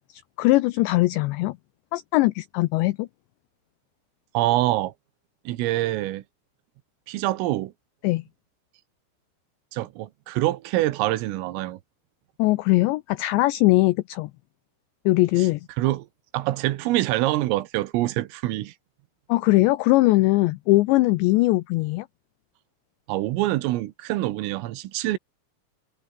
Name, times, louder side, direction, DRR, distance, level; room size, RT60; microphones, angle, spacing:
voice 1, 0.1-1.6 1.9-3.1 8.0-8.2 12.4-14.3 15.1-15.6 19.3-22.1, left 20 dB, 90° left, 2.5 m, -20 dB
voice 2, 4.4-4.9 5.5-6.2 7.1-7.7 9.7-11.8 15.8-16.1 16.3-18.7 23.1-25.2, right 16 dB, 80° right, 3.8 m, -25 dB
omnidirectional pair, 5.9 m